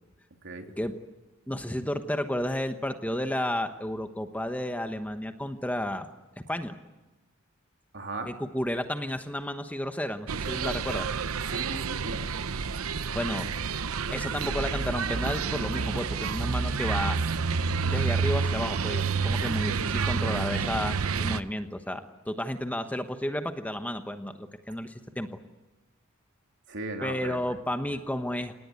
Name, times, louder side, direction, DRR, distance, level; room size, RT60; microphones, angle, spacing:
voice 1, 1.5-6.1 6.4-6.7 8.2-11.1 13.1-13.5 14.1-17.2 17.8-25.3 27.0-28.5, left 1 dB, 5° left, 7 dB, 1.1 m, -32 dB
voice 2, 7.9-8.3 11.5-12.3 26.7-27.5, right 2 dB, 60° right, 4 dB, 3.2 m, -37 dB
sound 1, 10.3-21.4, right 5 dB, 90° right, 0.8 m, -29 dB
27.0 x 19.0 x 9.5 m, 1.1 s
head